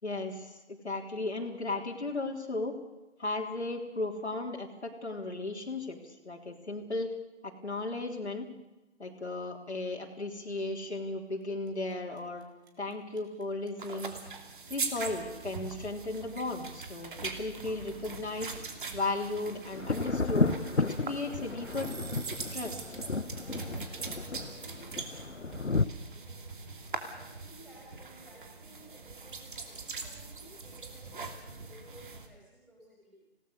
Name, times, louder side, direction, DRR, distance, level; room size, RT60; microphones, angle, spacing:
voice 1, 0.0-2.8 3.2-7.1 7.4-8.5 9.0-12.4 12.8-14.1 14.7-18.5 18.9-21.9 22.5-23.0, left 2 dB, 70° left, 1 dB, 3.7 m, -35 dB
sound 1, 11.7-11.9 12.2-22.9, right 6 dB, 20° right, 2.9 m, -48 dB
sound 2, 13.8-32.3, right 4 dB, 45° right, 2.9 m, -42 dB
Thunder, 19.7-25.9, left 3 dB, 90° left, 1.3 m, -32 dB
voice 2, 23.3-25.7 26.0-26.4 27.0-33.2, right 1 dB, ahead, -2 dB, 7.0 m, -56 dB
27.0 x 18.0 x 6.7 m, 1.1 s
figure-of-eight pair, 150°, 35 cm